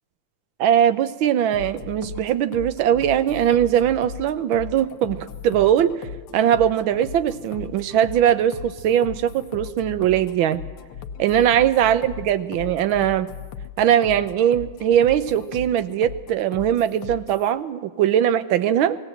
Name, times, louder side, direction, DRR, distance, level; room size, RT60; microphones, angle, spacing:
voice 1, 0.6-5.9 6.3-10.6 11.2-13.3 13.8-19.0, right 10 dB, 70° right, 12 dB, 1.6 m, -20 dB
sound 1, 1.5-17.5, left 7 dB, 85° left, 1.8 m, -38 dB
19.5 x 17.0 x 7.9 m, 1.3 s
omnidirectional pair, 2.4 m